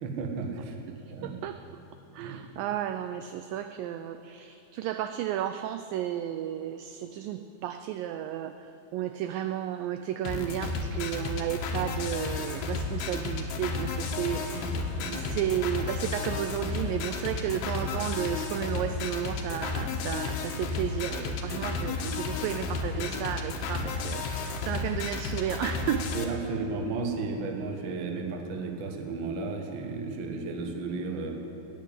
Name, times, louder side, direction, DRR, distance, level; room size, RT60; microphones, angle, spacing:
voice 1, 0.0-0.7 1.1-1.3 2.2-2.4 14.5-15.2 21.4-21.6 22.9-23.0 26.1-31.4, right 4 dB, 70° right, 2 dB, 1.1 m, -34 dB
voice 2, 0.9-1.6 2.1-14.8 15.1-26.1, right 11 dB, 85° right, 9 dB, 2.0 m, -33 dB
sound 1, 10.3-26.3, left 4 dB, 85° left, 3.3 m, -32 dB
14.5 x 10.0 x 9.8 m, 3.0 s
omnidirectional pair, 4.6 m